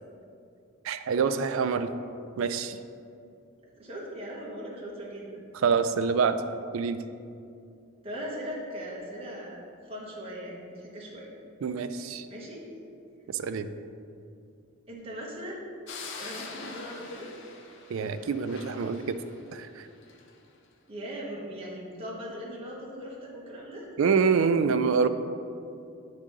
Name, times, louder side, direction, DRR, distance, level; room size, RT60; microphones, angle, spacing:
voice 1, 0.8-1.9 2.4-2.8 5.5-6.4 6.7-7.0 11.6-12.3 13.3-13.7 17.9-19.2 19.5-19.9 24.0-25.1, right 5 dB, 70° right, 10 dB, 0.3 m, -26 dB
voice 2, 3.8-5.4 8.0-9.6 9.9-11.3 12.3-12.6 14.9-15.6 16.1-17.3 20.9-23.9, equal, 25° right, -6 dB, 1.0 m, -39 dB
sound 1, 15.9-20.3, left 4 dB, 55° left, 0.6 m, -44 dB
8.8 x 3.7 x 3.9 m, 2.5 s
head